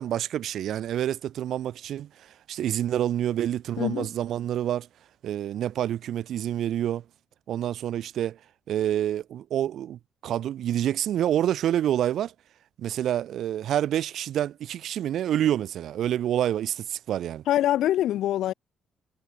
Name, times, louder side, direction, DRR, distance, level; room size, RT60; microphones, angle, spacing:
voice 1, 0.0-4.9 5.2-7.0 7.5-8.4 8.7-12.3 12.8-17.4, right 11 dB, 70° right, 1.3 m, -27 dB
voice 2, 17.5-18.5, left 12 dB, 80° left, 1.0 m, -24 dB
cardioid pair, 90°, 0 cm